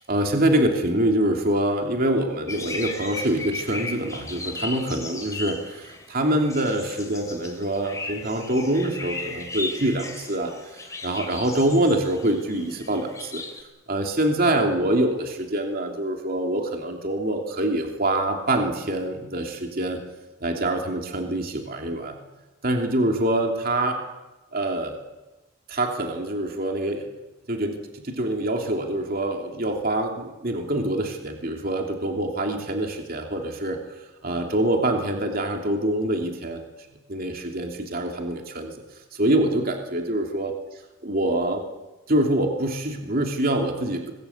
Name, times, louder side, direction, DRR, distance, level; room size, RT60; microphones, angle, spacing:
voice 1, 0.1-13.4 13.9-20.0 20.4-22.2 22.6-24.0 24.5-25.0 25.7-27.0 27.5-36.6 37.1-38.7 39.1-40.5 41.0-41.6 42.1-44.1, right 1 dB, 45° right, 2 dB, 2.9 m, -25 dB
sound 1, 2.5-13.6, left 3 dB, 15° left, 3.2 m, -36 dB
25.0 x 21.0 x 8.5 m, 1.1 s
head